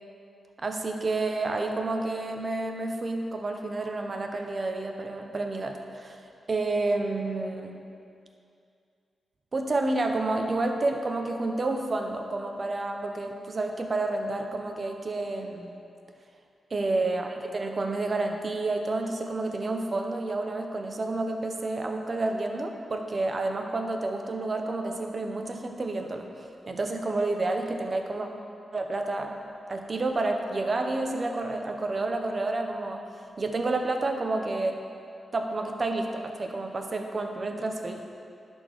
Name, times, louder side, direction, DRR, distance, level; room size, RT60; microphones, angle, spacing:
voice 1, 0.6-6.2 6.5-7.8 9.5-15.7 16.7-26.3 26.7-28.3 28.7-29.3 29.7-33.0 33.4-34.8 35.3-38.0, right 2 dB, 45° right, 4 dB, 0.9 m, -29 dB
11.0 x 4.6 x 6.4 m, 2.5 s
cardioid pair, 75°, 0 cm